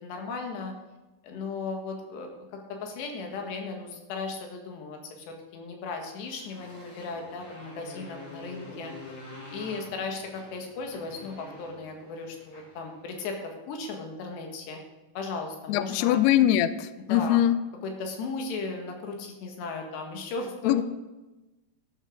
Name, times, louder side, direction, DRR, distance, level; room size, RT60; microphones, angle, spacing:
voice 1, 0.0-0.8 1.2-8.9 9.5-14.8 15.2-16.2 17.0-17.4 17.8-20.8, left 4 dB, 70° left, 3 dB, 3.8 m, -36 dB
Motorcycle, 6.0-13.4, left 1 dB, 35° left, 6.9 m, -47 dB
voice 2, 15.7-17.6 20.6-20.8, left 12 dB, 90° left, 14 dB, 2.3 m, -22 dB
12.5 x 8.5 x 6.7 m, 1.1 s
omnidirectional pair, 5.3 m